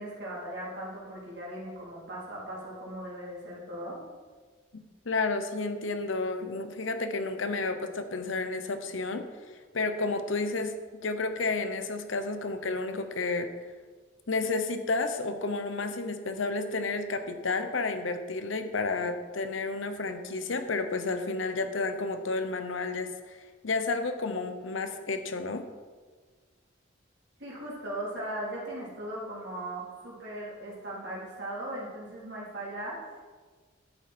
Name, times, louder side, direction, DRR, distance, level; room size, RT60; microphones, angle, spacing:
voice 1, 0.0-4.0 27.4-33.2, right 1 dB, 60° right, -6 dB, 3.6 m, -38 dB
voice 2, 4.7-9.3 9.7-10.7 11.0-13.5 14.3-25.6, left 3 dB, 80° left, 8 dB, 0.9 m, -31 dB
11.0 x 8.6 x 4.4 m, 1.4 s
head